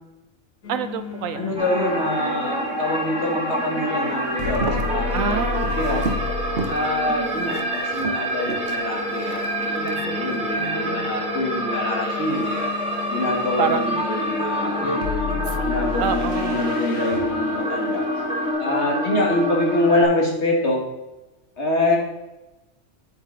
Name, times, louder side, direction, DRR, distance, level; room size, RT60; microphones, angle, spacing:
sound 1, 0.6-18.5, left 4 dB, 85° left, 2.0 m, -33 dB
voice 1, 0.7-1.4 5.1-5.8 7.1-7.7 9.8-11.2 13.6-14.0 15.3-16.6 19.0-19.1, right 7 dB, 75° right, 11 dB, 1.0 m, -29 dB
voice 2, 1.3-6.1 6.7-12.7 13.1-15.0 15.6-18.0 18.6-20.8 21.6-22.0, left 2 dB, 55° left, -1 dB, 2.2 m, -25 dB
sound 2, 1.6-20.0, equal, 5° right, 2.4 m, -27 dB
Walk footsteps, 4.4-6.3 6.6-6.9 7.2-9.9 10.4-10.7, right 4 dB, 50° right, 1.1 m, -32 dB
8.3 x 8.0 x 4.0 m, 1.0 s
omnidirectional pair, 1.4 m